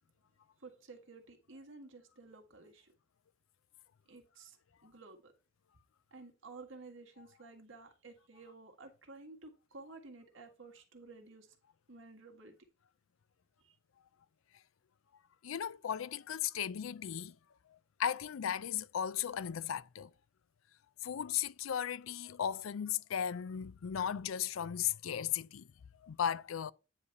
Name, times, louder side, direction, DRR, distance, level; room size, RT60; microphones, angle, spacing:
voice 1, 0.6-2.9 4.1-4.6 4.8-5.3 6.1-11.5 11.9-12.6 13.6-13.8, right 3 dB, 70° right, 1.7 m, -53 dB
voice 2, 15.4-17.3 17.7-20.1 21.0-25.7 26.0-26.7, left 9 dB, 90° left, 0.4 m, -36 dB
9.6 x 3.3 x 5.6 m
head